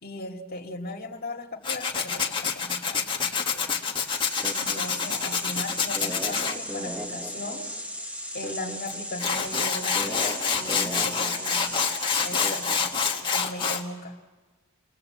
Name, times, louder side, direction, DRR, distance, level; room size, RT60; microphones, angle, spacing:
voice 1, 0.0-3.8 4.5-7.6 8.3-11.9 12.2-12.9 13.3-14.2, left 2 dB, 45° left, 0 dB, 2.1 m, -38 dB
Tools, 1.6-6.5 8.9-9.0 9.2-13.8, left 6 dB, 20° left, 1.6 m, -27 dB
sound 1, 3.8-13.3, equal, 5° right, 1.1 m, -36 dB
28.5 x 22.5 x 7.9 m, 1.4 s
head